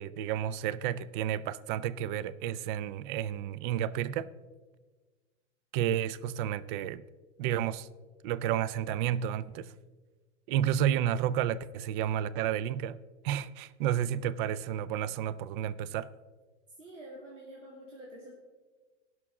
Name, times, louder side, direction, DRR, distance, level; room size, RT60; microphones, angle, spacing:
voice 1, 0.0-4.3 5.7-7.0 7.4-7.9 8.2-9.7 10.5-13.0 13.2-16.1, right 10 dB, 45° right, 0.4 m, -31 dB
voice 2, 16.8-18.3, right 1 dB, 85° right, 2.3 m, -47 dB
17.0 x 6.2 x 3.6 m
hypercardioid pair, 110°, 36 cm